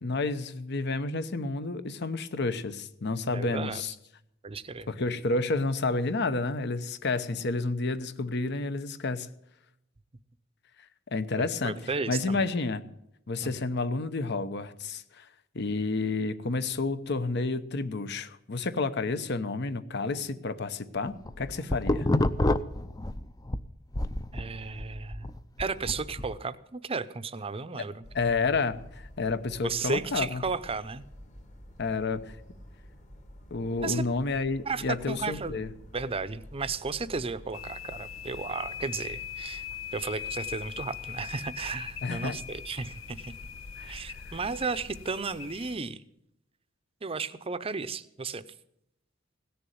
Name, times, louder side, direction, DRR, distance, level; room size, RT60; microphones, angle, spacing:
voice 1, 0.0-3.9 4.9-9.3 11.1-12.8 13.3-15.3 15.5-22.1 28.1-30.4 31.8-32.4 33.5-35.7 42.0-42.4 43.8-44.4, left 3 dB, 60° left, 12 dB, 0.9 m, -30 dB
voice 2, 3.3-3.8 4.4-4.9 11.4-12.4 13.4-13.6 24.3-25.3 25.6-28.0 29.6-31.0 33.8-34.0 34.7-35.6 35.9-39.6 39.9-43.3 43.8-46.0 47.0-48.4, right 4 dB, 30° right, 14 dB, 0.6 m, -34 dB
sound 1, 21.1-23.6 23.9-26.3, left 1 dB, 20° left, 0.5 m, -28 dB
sound 2, 28.0-45.1, equal, 40° left, 1.8 m, -49 dB
sound 3, 37.5-45.8, left 10 dB, 85° left, 0.7 m, -41 dB
17.0 x 7.0 x 9.3 m, 0.79 s
head